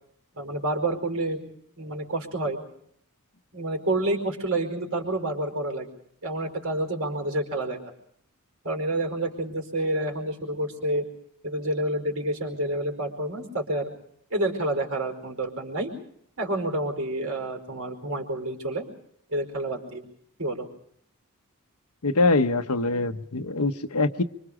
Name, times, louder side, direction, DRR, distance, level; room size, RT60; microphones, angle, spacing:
voice 1, 0.3-1.4 1.8-2.6 3.5-5.9 6.2-7.9 8.6-11.0 11.4-13.9 14.3-15.9 16.4-18.8 19.3-20.1 20.4-20.7, right 1 dB, 65° right, 4 dB, 4.8 m, -28 dB
voice 2, 22.0-24.2, left 3 dB, 85° left, 9 dB, 1.1 m, -23 dB
25.5 x 25.0 x 5.0 m, 0.69 s
head